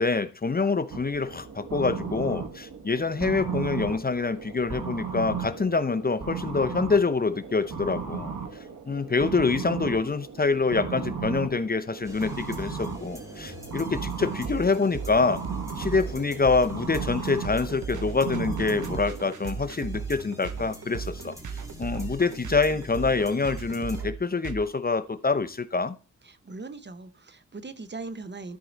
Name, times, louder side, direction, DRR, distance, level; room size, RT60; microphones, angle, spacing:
voice 1, 0.0-8.3 8.9-15.4 15.8-21.3 21.8-26.0, left 4 dB, 30° left, 0.7 m, -26 dB
sound 1, 0.9-19.2, right 5 dB, 90° right, 1.5 m, -36 dB
sound 2, 12.0-24.0, left 1 dB, 10° right, 2.6 m, -45 dB
sound 3, 13.9-24.6, right 6 dB, 75° right, 0.8 m, -36 dB
voice 2, 26.2-28.6, right 3 dB, 35° right, 0.8 m, -40 dB
13.0 x 4.7 x 3.9 m
wide cardioid pair, 90°, 31 cm